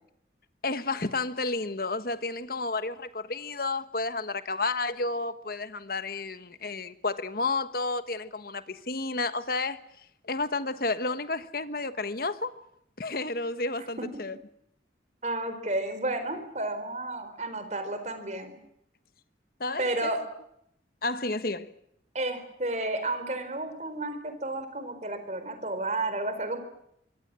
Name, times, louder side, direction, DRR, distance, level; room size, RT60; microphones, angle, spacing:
voice 1, 0.6-9.8 10.2-12.5 13.0-14.4 19.6-20.1 21.0-21.7, left 3 dB, 55° left, 1.4 m, -31 dB
voice 2, 15.2-18.6 19.8-20.2 22.1-26.6, right 2 dB, 40° right, 4.3 m, -32 dB
24.5 x 24.5 x 7.7 m
head